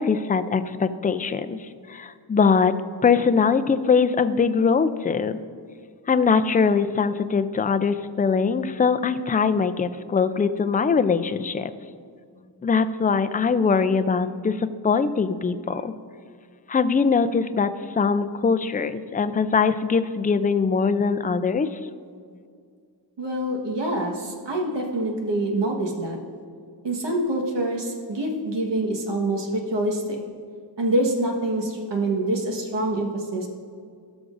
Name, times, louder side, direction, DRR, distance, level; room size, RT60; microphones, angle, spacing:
voice 1, 0.0-1.6 1.9-2.8 3.0-5.4 6.1-11.7 12.6-15.9 16.7-21.7, left 5 dB, 20° left, 11 dB, 0.4 m, -22 dB
voice 2, 23.2-26.2 26.8-30.2 30.8-33.5, right 1 dB, 75° right, 0 dB, 1.5 m, -26 dB
17.5 x 6.1 x 2.6 m, 2.2 s
wide cardioid pair, 85°, 43 cm